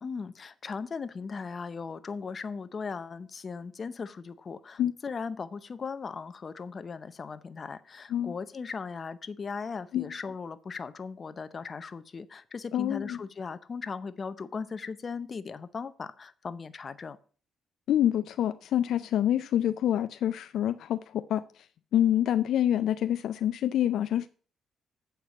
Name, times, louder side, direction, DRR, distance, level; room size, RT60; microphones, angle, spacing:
voice 1, 0.0-17.2, left 5 dB, 40° left, 0.7 m, -38 dB
voice 2, 12.7-13.2 17.9-21.4 21.9-24.3, left 11 dB, 75° left, 0.3 m, -26 dB
8.0 x 4.7 x 6.9 m
cardioid pair, 90°, 0 cm